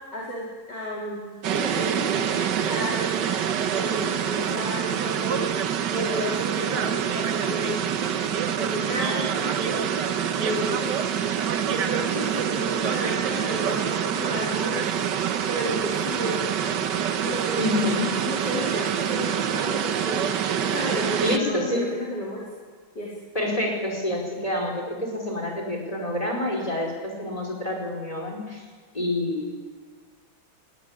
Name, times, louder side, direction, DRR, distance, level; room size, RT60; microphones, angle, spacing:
voice 1, 0.1-1.3 1.5-3.4 3.7-5.7 5.9-8.0 8.4-9.8 10.4-11.1 11.7-15.0 15.4-16.4 17.2-17.9 18.2-22.5 22.9-23.2, equal, 55° left, -4 dB, 4.1 m, -32 dB
sound 1, 1.4-21.4, right 8 dB, 65° right, 1.6 m, -26 dB
voice 2, 17.6-18.1 21.2-21.8 23.3-28.6 28.9-29.5, left 1 dB, 15° left, 0 dB, 5.0 m, -27 dB
20.0 x 17.0 x 9.9 m, 1.5 s
omnidirectional pair, 2.2 m